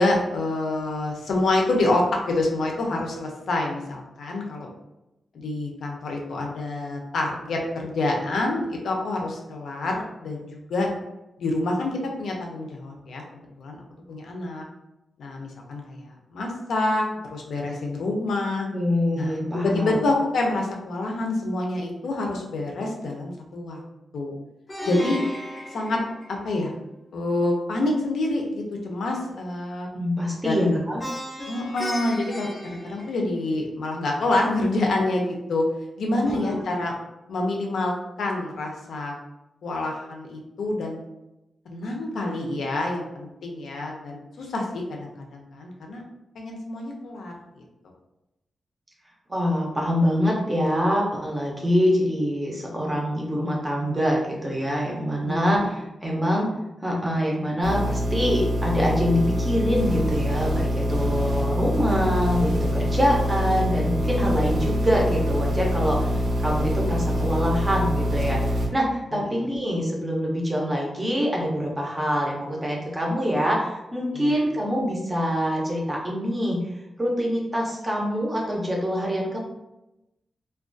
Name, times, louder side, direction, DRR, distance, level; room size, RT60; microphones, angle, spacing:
voice 1, 0.0-4.7 5.3-10.9 11.4-13.2 13.6-13.8 14.1-14.6 15.2-16.0 16.3-17.1 17.3-18.7 19.1-23.8 24.1-24.3 24.9-25.2 25.7-26.0 26.3-26.7 27.1-29.9 30.4-30.8 31.5-35.6 36.0-36.9 37.3-39.1 39.6-41.0 41.7-46.0 46.4-47.6 55.2-55.6 61.0-61.5 66.1-66.3 69.1-69.2 74.1-74.3, left 2 dB, 85° left, 1 dB, 0.5 m, -27 dB
voice 2, 18.7-20.0 29.9-31.0 36.1-36.8 49.3-56.5 56.8-76.6 77.0-79.4, equal, 15° right, -2 dB, 0.5 m, -25 dB
Plucked string instrument, 24.7-26.8 31.0-33.6, left 1 dB, 30° left, 0.5 m, -35 dB
sound 1, 57.6-68.7, equal, 70° right, 0.7 m, -25 dB
2.3 x 2.2 x 2.5 m, 0.93 s
wide cardioid pair, 175°, 0 cm